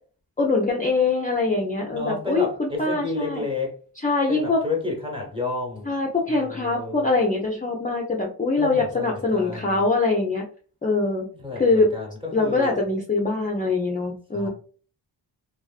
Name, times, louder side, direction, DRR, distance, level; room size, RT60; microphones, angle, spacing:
voice 1, 0.4-3.4 4.0-4.7 5.9-10.4 10.8-11.3 11.6-11.9 12.3-14.5, left 3 dB, 20° left, 0.5 m, -23 dB
voice 2, 1.9-3.8 4.3-5.9 6.3-7.1 8.6-9.8 11.4-12.8 14.3-14.5, left 3 dB, 10° right, 1.1 m, -31 dB
2.4 x 2.4 x 2.3 m
cardioid pair, 50°, 43 cm